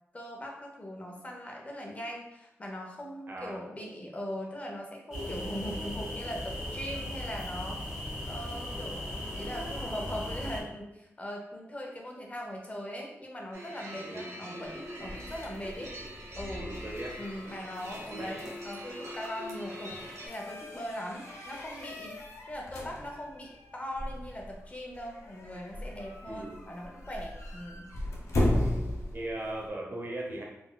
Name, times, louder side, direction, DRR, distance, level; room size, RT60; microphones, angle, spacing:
voice 1, 0.1-7.8 8.3-15.9 16.4-16.7 17.2-19.9 20.2-27.9, equal, 30° left, 0 dB, 0.6 m, -40 dB
voice 2, 3.3-3.6 14.0-14.3 15.8-15.9 16.6-17.2 18.1-18.3 26.3-26.6 28.6-30.4, right 1 dB, 45° right, -1 dB, 0.7 m, -39 dB
sound 1, 5.1-10.6, left 1 dB, 10° right, 1.0 m, -37 dB
sound 2, 13.5-20.3, equal, 85° right, 0.6 m, -43 dB
sound 3, 14.6-29.7, left 1 dB, 90° left, 0.5 m, -37 dB
3.8 x 2.2 x 2.2 m, 0.91 s
wide cardioid pair, 105°, 5 cm